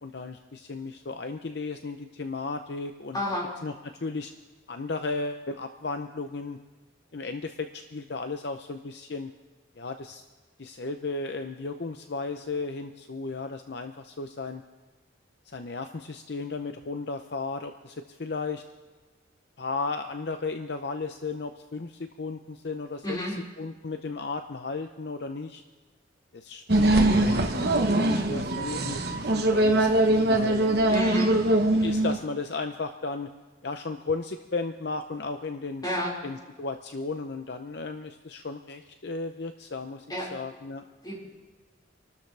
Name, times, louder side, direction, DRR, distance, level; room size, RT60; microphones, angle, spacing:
voice 1, 0.0-3.2 3.6-4.3 4.7-6.6 7.1-9.3 9.8-10.2 10.6-14.6 15.5-18.6 19.6-23.2 23.6-25.6 26.3-30.8 31.7-33.3 33.6-35.8 36.2-40.8, left 3 dB, 55° left, 7 dB, 0.6 m, -35 dB
voice 2, 3.1-3.5 23.0-23.3 30.9-31.3 35.8-36.1 40.1-40.3 41.0-41.2, left 1 dB, 20° left, -6 dB, 5.0 m, -30 dB
sound 1, 26.7-32.2, right 1 dB, 55° right, 1.2 m, -22 dB
26.5 x 12.5 x 3.4 m, 1.3 s
head